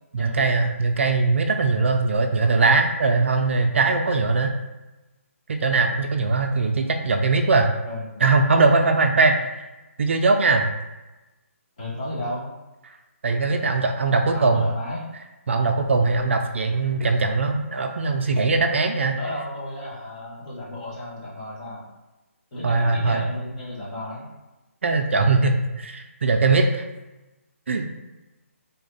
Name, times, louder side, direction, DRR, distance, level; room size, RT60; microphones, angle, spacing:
voice 1, 0.1-4.5 5.5-7.7 8.2-9.5 10.0-10.7 13.2-14.6 15.5-19.2 22.6-23.2 24.8-26.8 27.7-27.8, right 3 dB, 55° right, 4 dB, 0.3 m, -20 dB
voice 2, 11.8-12.5 14.3-15.1 19.1-21.8 22.5-24.3, left 1 dB, 30° left, -7 dB, 1.2 m, -33 dB
3.4 x 2.1 x 3.9 m, 1.1 s
hypercardioid pair, 165°, 8 cm